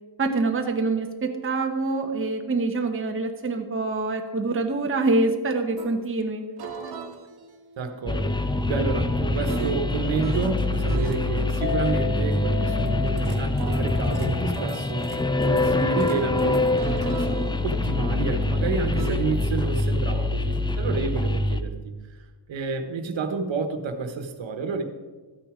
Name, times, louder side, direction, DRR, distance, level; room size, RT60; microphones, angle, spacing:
voice 1, 0.2-6.4, right 3 dB, 30° right, 3 dB, 1.0 m, -25 dB
sound 1, 5.8-5.9 6.6-10.6 10.9-11.2 12.9-19.2, right 5 dB, 60° right, 1.3 m, -37 dB
voice 2, 7.8-8.3 8.6-15.1 15.6-21.9 22.5-24.8, right 4 dB, 85° right, 7 dB, 1.3 m, -30 dB
sound 2, 8.1-21.6, left 2 dB, 10° left, 0.4 m, -25 dB
Chink clink, 11.6-17.9, left 10 dB, 75° left, 2.9 m, -37 dB
13.5 x 9.3 x 5.0 m, 1.3 s
wide cardioid pair, 175°, 44 cm